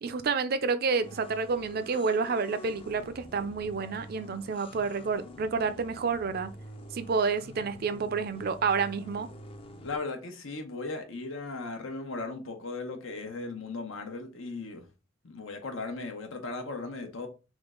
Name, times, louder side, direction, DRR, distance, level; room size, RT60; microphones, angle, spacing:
voice 1, 0.0-6.5 6.9-9.3, right 5 dB, 50° right, 0.4 m, -29 dB
sound 1, 1.0-10.0, left 1 dB, 30° left, 0.5 m, -47 dB
voice 2, 9.8-14.9 15.2-17.3, left 3 dB, 85° left, 1.0 m, -37 dB
3.6 x 3.2 x 3.7 m
head